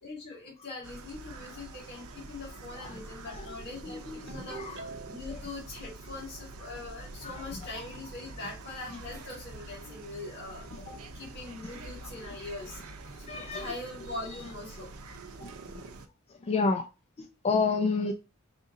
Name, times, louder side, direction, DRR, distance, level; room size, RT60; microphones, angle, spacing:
voice 1, 0.0-12.8 13.0-14.9, left 3 dB, 50° left, 2.5 m, -42 dB
sound 1, 0.8-16.1, right 2 dB, 85° right, 0.7 m, -46 dB
voice 2, 3.8-4.8 5.3-5.4 7.2-7.4 13.3-13.7 15.4-15.8 16.4-16.9 17.2-18.1, left 4 dB, 30° left, 0.4 m, -30 dB
Ringtone, 4.3-5.4, right 4 dB, 55° right, 1.0 m, -44 dB
5.0 x 2.6 x 3.7 m
head